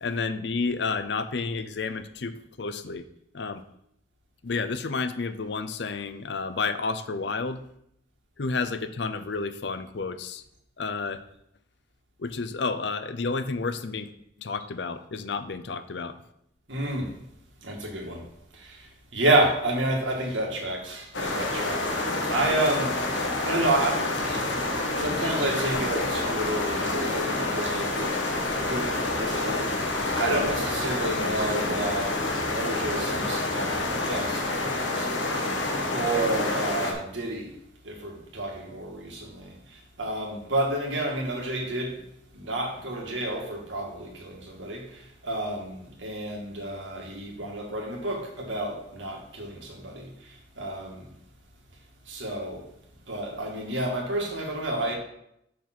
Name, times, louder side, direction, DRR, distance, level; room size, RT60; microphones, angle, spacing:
voice 1, 0.0-3.0 3.3-3.6 4.4-7.6 8.4-10.4 10.8-11.2 12.2-14.1 14.4-16.2, left 4 dB, 70° left, 0.6 m, -31 dB
voice 2, 16.7-17.1 17.6-18.2 18.5-18.8 19.1-21.9 22.2-23.0 23.4-28.2 28.6-32.2 32.5-35.4 35.9-37.5 37.8-39.5 40.0-42.0 42.3-50.1 50.6-51.1 52.1-52.6 53.1-55.0, right 1 dB, 90° right, 1.8 m, -30 dB
sound 1, 21.1-36.9, left 2 dB, 85° left, 1.3 m, -28 dB
5.9 x 4.5 x 5.9 m
head